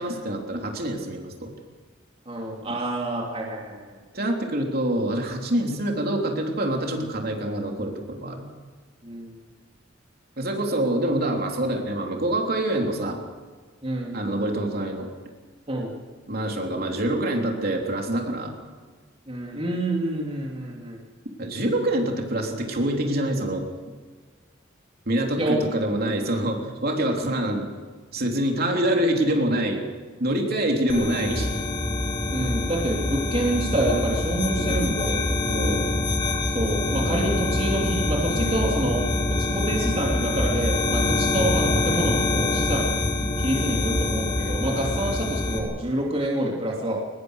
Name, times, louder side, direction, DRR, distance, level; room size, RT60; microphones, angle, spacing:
voice 1, 0.0-1.5 4.1-8.5 10.4-13.2 14.1-15.1 16.3-18.5 21.4-23.7 25.1-27.7 28.1-29.8 30.2-31.5 35.5-35.9, right 1 dB, 55° right, 1 dB, 3.4 m, -25 dB
voice 2, 2.3-4.0 9.0-9.3 13.8-14.2 15.7-15.9 19.3-21.0 25.4-25.6 32.3-35.3 36.5-39.0 39.3-43.0 43.4-47.0, right 1 dB, 30° right, -1 dB, 3.0 m, -27 dB
sound 1, 30.9-45.6, left 2 dB, 25° left, 3.9 m, -25 dB
22.5 x 20.5 x 6.6 m, 1.5 s
head